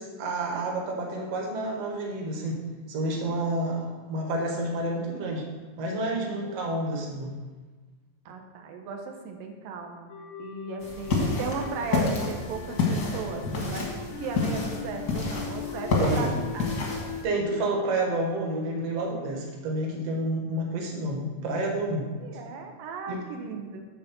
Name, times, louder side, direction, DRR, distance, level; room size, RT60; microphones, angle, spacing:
voice 1, 0.0-2.6 2.9-5.4 5.8-7.3 16.0-16.4 17.2-22.1 23.1-23.2, right 1 dB, 55° right, 0 dB, 2.0 m, -29 dB
voice 2, 3.1-3.5 6.1-6.5 8.3-10.1 10.4-13.9 14.2-16.7 22.2-23.8, right 5 dB, 80° right, 3 dB, 2.4 m, -36 dB
sound 1, 10.1-19.3, left 6 dB, 85° left, 2.3 m, -41 dB
sound 2, 10.8-17.2, left 3 dB, 60° left, 1.0 m, -29 dB
9.2 x 4.0 x 6.8 m, 1.3 s
omnidirectional pair, 4.0 m